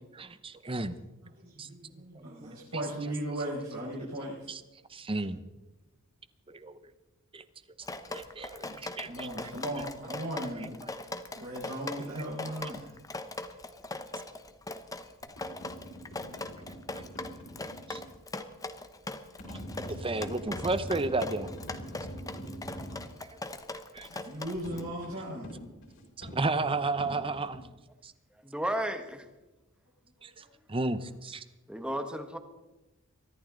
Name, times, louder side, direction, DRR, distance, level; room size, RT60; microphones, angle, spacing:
voice 1, 0.1-1.0 1.6-1.7 2.1-2.6 4.5-4.6 4.9-5.4 6.5-6.8 7.3-7.4 8.1-10.2 10.6-10.9 12.1-12.2 17.9-18.0 19.5-19.6 19.9-21.5 23.9-24.1 26.2-27.6 28.0-28.1 30.2-31.4, right 2 dB, 25° right, 13 dB, 0.8 m, -33 dB
voice 2, 1.4-4.5 8.6-8.7 9.0-10.8 11.3-12.9 24.1-25.5, right 1 dB, 80° right, -7 dB, 5.3 m, -37 dB
Drip, 7.8-24.8, left 2 dB, 15° left, 0.9 m, -40 dB
sound 1, 15.2-18.1 19.4-23.1 24.6-27.6, equal, 65° left, 4.6 m, -43 dB
voice 3, 28.4-29.3 31.7-32.4, right 1 dB, 5° right, 7 dB, 1.3 m, -33 dB
23.5 x 14.5 x 3.9 m, 1.0 s
head